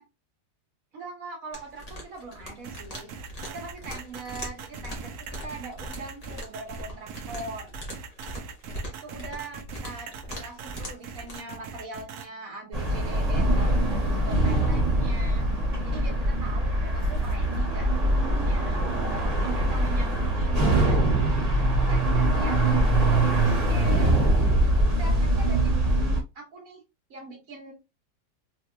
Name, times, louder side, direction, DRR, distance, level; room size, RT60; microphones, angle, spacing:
voice 1, 0.9-3.1 3.5-7.8 8.7-15.5 15.8-21.5 21.9-24.2 24.5-25.9 26.3-26.8 27.1-27.7, right 2 dB, 55° right, 1 dB, 1.6 m, -42 dB
sound 1, 1.5-11.4, equal, 25° left, 0.9 m, -41 dB
sound 2, 2.6-12.2, right 6 dB, 70° right, 1.1 m, -41 dB
sound 3, 12.7-26.2, right 1 dB, 25° right, 1.4 m, -23 dB
3.7 x 2.9 x 2.2 m, 0.24 s
omnidirectional pair, 1.8 m